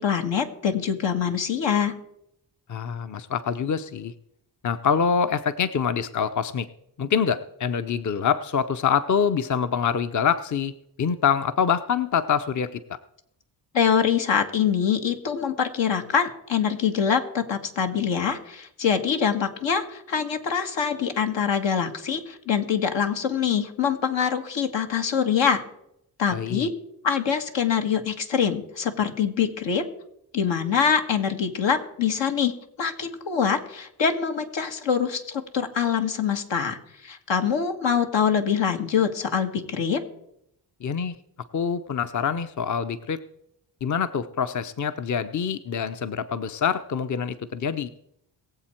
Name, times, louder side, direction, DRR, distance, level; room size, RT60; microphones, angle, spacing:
voice 1, 0.0-1.9 13.7-25.6 26.2-26.7 27.0-29.9 30.3-36.8 37.0-40.0, left 7 dB, 80° left, 5 dB, 1.7 m, -24 dB
voice 2, 2.7-4.1 4.6-6.7 7.0-10.7 11.0-12.8 26.3-26.7 40.8-41.2 41.5-43.2 43.8-47.9, left 7 dB, 45° left, 12 dB, 0.7 m, -25 dB
22.0 x 7.7 x 4.4 m, 0.77 s
cardioid pair, 75°, 44 cm